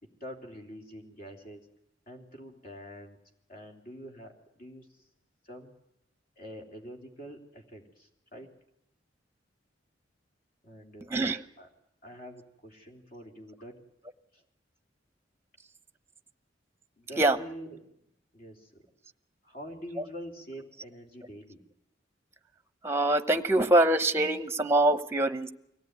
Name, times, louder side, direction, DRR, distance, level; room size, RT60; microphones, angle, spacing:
voice 1, 0.0-1.7 2.1-3.2 3.5-5.0 5.4-5.7 6.4-8.6 10.6-11.1 11.6-11.7 12.0-13.8 14.3-14.4 17.0-17.9 18.3-18.8 19.4-21.6, equal, 50° left, 2 dB, 3.1 m, -45 dB
voice 2, 22.8-25.5, right 2 dB, 15° right, 10 dB, 0.9 m, -24 dB
24.0 x 17.0 x 9.5 m, 0.82 s
head